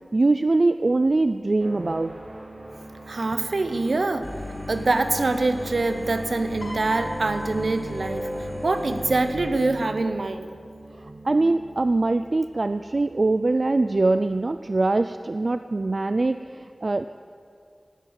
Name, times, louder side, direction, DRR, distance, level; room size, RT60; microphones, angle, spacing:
voice 1, 0.1-2.1 11.0-17.0, right 2 dB, 65° right, 10 dB, 0.3 m, -23 dB
sound 1, 1.6-14.7, right 1 dB, 50° right, 1.5 m, -40 dB
voice 2, 3.1-4.3 4.7-8.3 8.6-10.5, right 3 dB, 85° right, 8 dB, 0.7 m, -24 dB
sound 2, 4.2-9.3, left 2 dB, 40° left, 2.8 m, -37 dB
Piano, 6.6-9.0 10.0-10.3, left 1 dB, 65° left, 2.3 m, -41 dB
15.0 x 6.3 x 8.7 m, 2.3 s
wide cardioid pair, 45°, 0 cm